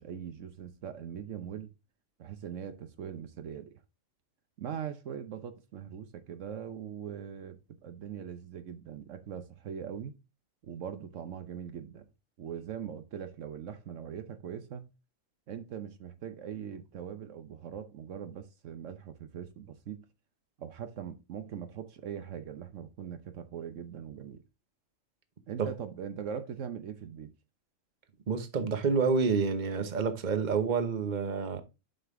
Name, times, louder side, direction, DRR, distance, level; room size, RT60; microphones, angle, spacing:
voice 1, 0.0-1.7 2.2-3.8 4.6-10.1 10.6-12.1 12.4-14.8 15.5-20.0 20.6-24.4 25.5-27.3, right 8 dB, 70° right, 1.1 m, -41 dB
voice 2, 28.3-31.6, right 5 dB, 40° right, 1.0 m, -28 dB
7.6 x 5.6 x 3.6 m
omnidirectional pair, 1.3 m